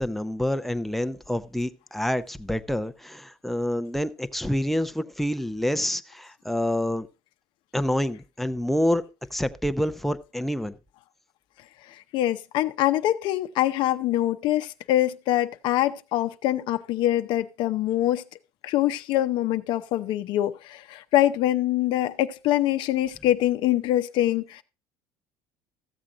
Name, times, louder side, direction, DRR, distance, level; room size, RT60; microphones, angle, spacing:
voice 1, 0.0-7.1 7.7-9.0 9.3-10.7, left 1 dB, ahead, 0.6 m, -27 dB
voice 2, 11.9-18.2 18.6-24.6, left 13 dB, 60° left, 0.7 m, -24 dB
14.0 x 7.4 x 3.8 m
cardioid pair, 125°, 9 cm